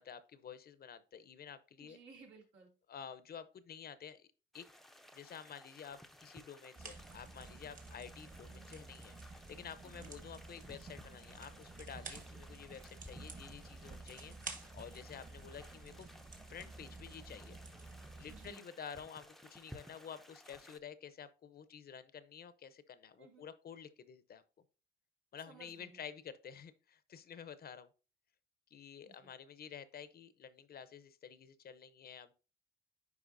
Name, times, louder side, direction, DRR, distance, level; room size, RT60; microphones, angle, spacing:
voice 1, 0.0-2.0 2.9-4.3 4.5-4.7 5.1-16.1 16.5-17.6 18.2-24.4 25.3-27.9 28.7-32.3, left 7 dB, 50° left, 14 dB, 0.7 m, -51 dB
voice 2, 1.8-2.7 9.8-10.1 18.3-18.6 23.2-23.5 25.5-26.0 29.0-29.3, right 5 dB, 80° right, -2 dB, 2.6 m, -58 dB
sound 1, 4.5-20.8, left 1 dB, ahead, 0.6 m, -58 dB
sound 2, 6.7-18.5, right 3 dB, 40° right, 1.7 m, -51 dB
9.7 x 4.8 x 2.6 m, 0.34 s
cardioid pair, 90°, 20 cm